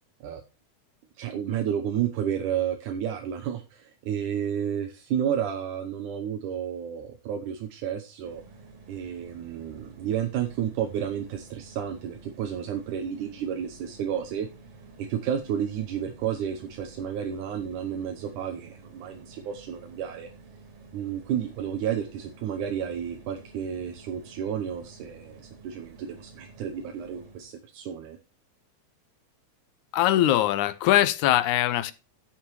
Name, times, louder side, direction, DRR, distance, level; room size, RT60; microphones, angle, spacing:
voice 1, 1.2-8.4 8.9-14.5 15.0-20.3 20.9-28.2, right 9 dB, 85° right, 2.5 m, -31 dB
sound 1, 8.2-27.5, right 4 dB, 70° right, 3.6 m, -50 dB
voice 2, 29.9-31.9, left 13 dB, 80° left, 2.1 m, -22 dB
11.0 x 7.1 x 4.7 m
omnidirectional pair, 3.5 m